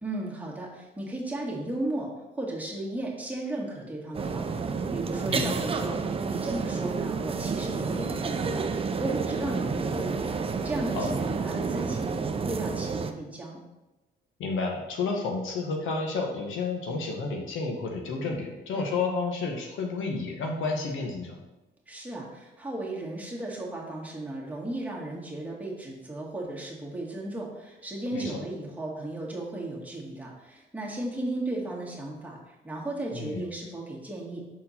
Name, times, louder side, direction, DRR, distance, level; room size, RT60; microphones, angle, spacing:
voice 1, 0.0-8.7 8.9-10.3 10.6-13.6 21.9-34.4, right 1 dB, 5° right, -4 dB, 1.8 m, -35 dB
sound 1, 4.1-13.1, right 5 dB, 30° right, 0.5 m, -30 dB
voice 2, 14.4-21.4 28.1-28.4 33.1-33.4, left 4 dB, 85° left, 1 dB, 1.1 m, -31 dB
6.3 x 4.4 x 4.2 m, 1.0 s
cardioid pair, 90°, 20 cm